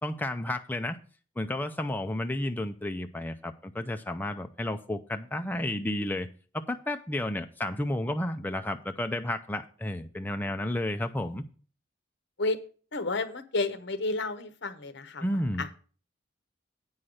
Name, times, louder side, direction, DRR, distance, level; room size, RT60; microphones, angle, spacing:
voice 1, 0.0-1.0 1.4-6.3 6.5-11.4 15.2-15.6, left 1 dB, 10° left, 0.5 m, -32 dB
voice 2, 12.9-15.2 15.6-15.8, left 3 dB, 65° left, 1.0 m, -31 dB
8.8 x 5.6 x 6.3 m
head